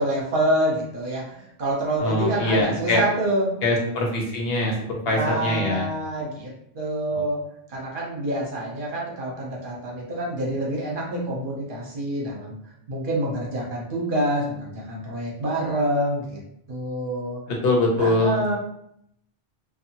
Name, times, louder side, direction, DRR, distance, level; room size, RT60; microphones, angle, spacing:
voice 1, 0.0-3.9 5.0-7.4 7.7-12.5 12.9-16.4 16.7-17.4 18.0-18.5, right 1 dB, 55° right, -3 dB, 0.9 m, -27 dB
voice 2, 2.0-3.0 3.6-4.8 5.0-5.9 7.1-7.2 17.5-18.5, left 2 dB, 70° left, -1 dB, 0.9 m, -23 dB
2.6 x 2.3 x 2.8 m, 0.74 s
omnidirectional pair, 1.1 m